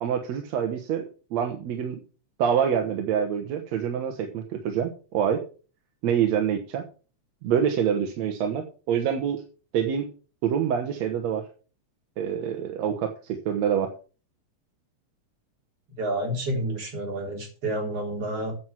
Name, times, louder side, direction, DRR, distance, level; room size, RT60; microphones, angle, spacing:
voice 1, 0.0-2.0 2.4-5.4 6.0-6.8 7.4-9.4 9.7-10.1 10.4-11.5 12.2-13.9, right 8 dB, 70° right, 4 dB, 2.2 m, -26 dB
voice 2, 15.9-18.5, right 1 dB, 50° right, 0 dB, 4.6 m, -29 dB
9.4 x 7.3 x 6.0 m, 0.37 s
omnidirectional pair, 3.4 m